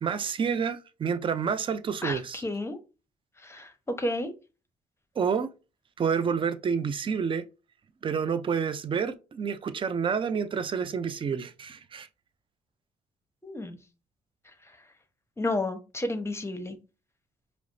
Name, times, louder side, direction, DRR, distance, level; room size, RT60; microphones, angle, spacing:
voice 1, 0.0-2.4 5.2-5.5 6.0-7.4 8.0-12.1, right 6 dB, 35° right, 0.4 m, -29 dB
voice 2, 2.0-2.8 3.4-4.3 13.4-13.8 14.6-14.8 15.4-16.8, left 1 dB, 15° left, 0.8 m, -32 dB
4.6 x 2.0 x 2.6 m
hypercardioid pair, 55°, 15 cm